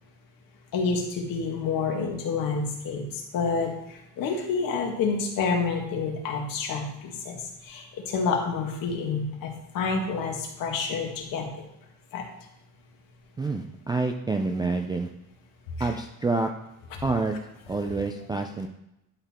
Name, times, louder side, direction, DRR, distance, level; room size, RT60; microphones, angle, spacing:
voice 1, 0.7-11.5 12.1-12.2 15.8-15.9, left 4 dB, 55° left, 1 dB, 1.9 m, -29 dB
voice 2, 13.4-15.1 15.8-16.5 17.0-17.4 17.7-18.7, right 3 dB, 10° right, 2 dB, 0.3 m, -27 dB
11.0 x 4.0 x 4.3 m, 0.84 s
cardioid pair, 130°, 39 cm